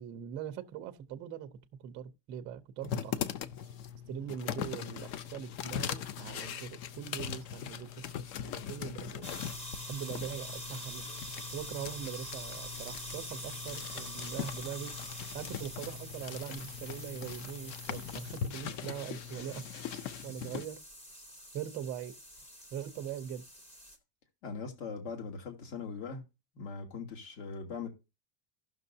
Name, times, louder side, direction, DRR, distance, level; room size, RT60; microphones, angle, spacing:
voice 1, 0.0-3.2 4.1-9.3 9.9-11.1 11.5-14.9 15.3-19.7 20.2-20.8 21.5-22.1 22.7-23.4, right 9 dB, 25° right, 0.5 m, -42 dB
sound 1, 2.8-20.7, left 9 dB, 40° left, 0.5 m, -40 dB
sound 2, 9.2-24.0, equal, 15° left, 0.8 m, -45 dB
voice 2, 24.4-26.2 26.5-27.9, left 5 dB, 65° left, 2.7 m, -40 dB
16.0 x 6.1 x 2.7 m
cardioid pair, 175°, 48 cm